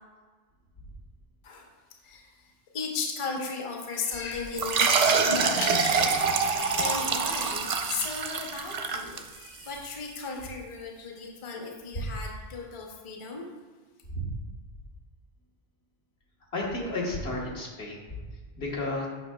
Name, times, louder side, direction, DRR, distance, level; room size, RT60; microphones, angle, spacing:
voice 1, 2.0-13.5, left 4 dB, 35° left, 1 dB, 0.7 m, -36 dB
sound 1, 4.6-9.7, right 5 dB, 50° right, 0.5 m, -25 dB
voice 2, 16.5-18.2 18.6-19.1, left 1 dB, 80° left, -3 dB, 1.5 m, -32 dB
7.8 x 5.4 x 2.2 m, 1.4 s
omnidirectional pair, 1.1 m